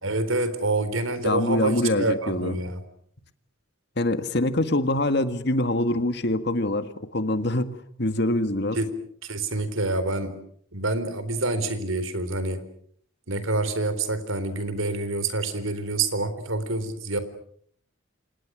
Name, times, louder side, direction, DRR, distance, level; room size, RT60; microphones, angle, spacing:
voice 1, 0.0-2.8 8.7-8.9 9.2-10.4 10.7-12.6 13.3-17.2, right 2 dB, 80° right, 12 dB, 4.0 m, -27 dB
voice 2, 1.2-2.5 4.0-8.8, left 1 dB, 55° left, 10 dB, 1.9 m, -24 dB
29.5 x 27.0 x 6.4 m, 0.64 s
head